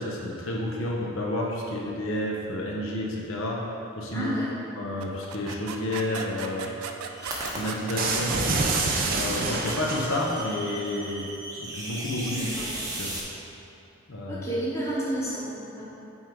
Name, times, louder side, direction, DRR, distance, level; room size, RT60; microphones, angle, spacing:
voice 1, 0.0-3.6 4.0-4.3 4.8-6.7 7.6-8.4 9.1-11.3 11.6-12.5 13.0-13.1 14.1-14.4, left 1 dB, 70° left, -2 dB, 0.8 m, -30 dB
voice 2, 4.1-4.5 12.3-12.7 14.3-15.9, right 1 dB, 15° left, -8 dB, 1.2 m, -31 dB
sound 1, 5.0-9.8, right 6 dB, 90° right, 0.4 m, -37 dB
sound 2, 7.1-13.2, right 1 dB, 15° right, 0.9 m, -37 dB
sound 3, 8.0-10.4, right 3 dB, 40° right, 0.6 m, -27 dB
8.4 x 3.8 x 4.6 m, 2.8 s
head